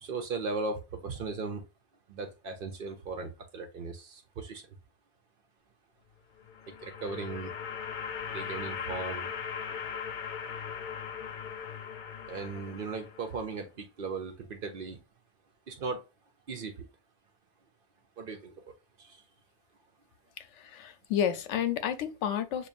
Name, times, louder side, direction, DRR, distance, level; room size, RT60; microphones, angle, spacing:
voice 1, 0.0-1.6 2.1-4.6 6.8-7.5 8.3-9.3 12.3-15.0 15.7-16.0 16.5-16.7 18.2-18.5, right 4 dB, 55° right, 0.7 m, -37 dB
ghost pad, 6.3-13.5, left 7 dB, 55° left, 0.6 m, -39 dB
voice 2, 20.4-22.7, left 9 dB, 85° left, 0.9 m, -31 dB
6.7 x 2.2 x 2.4 m
omnidirectional pair, 1.2 m